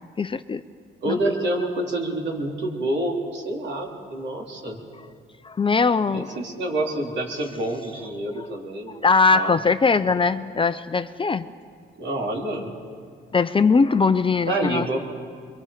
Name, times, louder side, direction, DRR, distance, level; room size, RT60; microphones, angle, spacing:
voice 1, 0.2-0.6 1.1-1.2 5.4-6.4 8.4-8.5 9.0-11.5 13.3-14.9, left 4 dB, 25° left, 11 dB, 0.6 m, -20 dB
voice 2, 1.0-4.8 6.1-9.1 9.3-9.6 12.0-12.8 14.5-15.0, right 1 dB, 65° right, 0 dB, 3.4 m, -27 dB
24.5 x 23.0 x 5.1 m, 2.2 s
cardioid pair, 90°, 20 cm